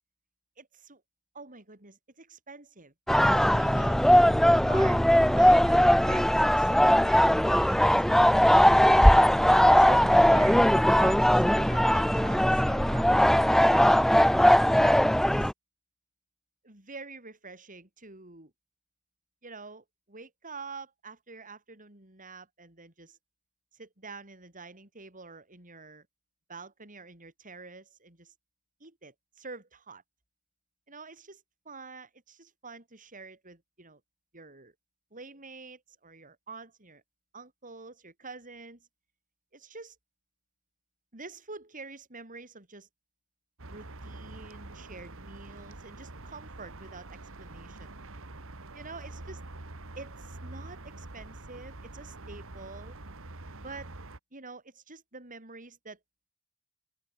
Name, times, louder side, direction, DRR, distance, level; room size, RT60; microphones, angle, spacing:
voice 1, 0.6-1.0 1.3-2.9 3.2-4.0 4.6-9.0 9.8-13.7 14.8-15.5 16.6-18.5 19.4-23.2 23.7-26.1 26.5-28.3 28.8-30.0 30.9-34.0 34.3-34.7 35.1-37.0 37.3-38.9 39.5-40.0 41.1-42.9 43.7-47.9 48.7-49.4 50.0-53.0 53.6-53.9 54.3-56.0, right 4 dB, 40° right, 7.7 m, -47 dB
sound 1, 3.1-15.5, equal, ahead, 0.5 m, -20 dB
sound 2, 43.6-54.2, right 2 dB, 65° right, 2.3 m, -45 dB
open air
head